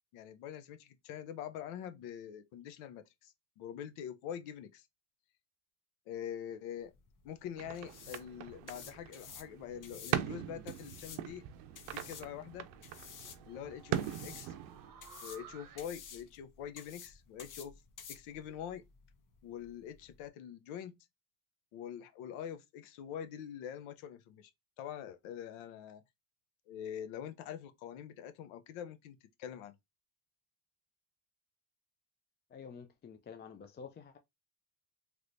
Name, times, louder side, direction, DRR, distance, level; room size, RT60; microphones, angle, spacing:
voice 1, 0.1-4.9 6.1-6.9 7.2-11.4 11.9-12.7 13.5-14.5 15.2-17.7 18.1-18.8 19.4-21.0 21.7-24.5 24.8-26.0 26.7-29.7, left 9 dB, 80° left, 0.8 m, -45 dB
sound 1, 6.8-20.3, left 7 dB, 40° left, 0.8 m, -53 dB
sound 2, 7.6-14.9, right 11 dB, 85° right, 0.6 m, -41 dB
sound 3, 9.7-15.9, right 8 dB, 45° right, 0.8 m, -58 dB
voice 2, 32.5-34.2, left 6 dB, 25° left, 0.3 m, -49 dB
3.2 x 3.1 x 2.6 m
supercardioid pair, 95°, 47 cm